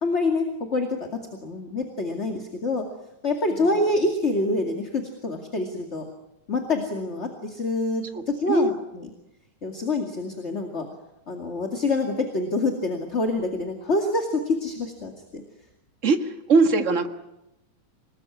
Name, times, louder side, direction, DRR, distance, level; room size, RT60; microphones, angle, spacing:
voice 1, 0.0-0.9 1.4-2.8 3.2-6.0 6.5-9.1 9.6-10.9 11.3-15.4, left 2 dB, 25° left, 4 dB, 2.1 m, -26 dB
voice 2, 8.1-8.7 16.0-17.1, right 3 dB, 40° right, 8 dB, 1.1 m, -22 dB
27.0 x 20.0 x 9.7 m, 0.88 s
omnidirectional pair, 3.6 m